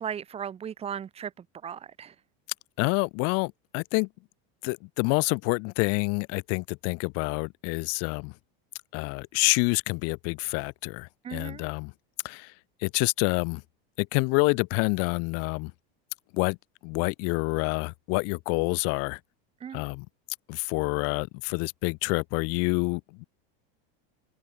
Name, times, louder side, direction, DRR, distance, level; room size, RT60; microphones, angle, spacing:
voice 1, 0.0-2.1 11.2-11.6 19.6-19.8, right 8 dB, 20° right, 1.1 m, -37 dB
voice 2, 2.8-4.1 4.6-8.3 8.9-11.9 12.2-12.5 12.8-13.6 14.0-15.7 16.3-16.6 16.8-19.2 19.7-20.1 20.5-23.2, left 33 dB, 50° left, 1.2 m, -27 dB
supercardioid pair, 150°, 31 cm